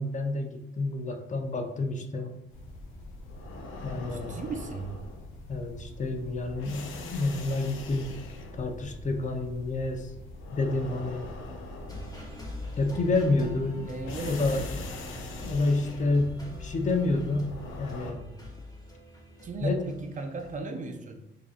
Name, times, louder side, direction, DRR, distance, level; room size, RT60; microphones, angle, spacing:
voice 1, 0.0-2.4 3.8-4.3 5.5-8.2 8.6-10.1 10.5-11.3 12.8-13.9 14.2-14.7 15.4-18.3 19.6-19.9, left 2 dB, 40° left, 5 dB, 0.6 m, -29 dB
sound 1, 2.5-18.1, left 2 dB, 90° left, 0.6 m, -42 dB
voice 2, 4.1-5.0 13.8-14.7 19.4-21.2, right 3 dB, 40° right, 5 dB, 0.5 m, -36 dB
sound 2, 11.9-20.6, left 1 dB, 20° left, 1.1 m, -43 dB
5.0 x 2.7 x 2.5 m, 0.89 s
cardioid pair, 90°, 20 cm